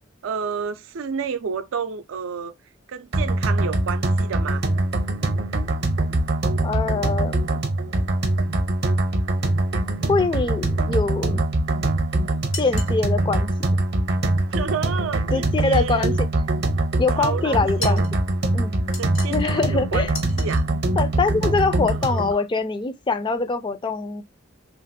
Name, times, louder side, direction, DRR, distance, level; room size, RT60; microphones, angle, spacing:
voice 1, 0.2-2.5 2.9-4.6 14.5-16.0 17.1-18.1 19.0-20.1 20.4-20.7 21.9-22.4, right 6 dB, 85° right, 0.4 m, -30 dB
sound 1, 3.1-22.3, right 2 dB, 55° right, 0.7 m, -23 dB
voice 2, 6.6-7.6 10.1-11.4 12.6-13.5 15.3-16.1 17.0-18.0 18.5-19.0 19.3-20.1 21.0-24.2, left 4 dB, 25° left, 0.3 m, -24 dB
sound 2, 12.5-13.0 17.8-18.1 18.9-19.5 20.1-20.6, left 4 dB, 80° left, 1.3 m, -35 dB
3.1 x 2.5 x 2.5 m
head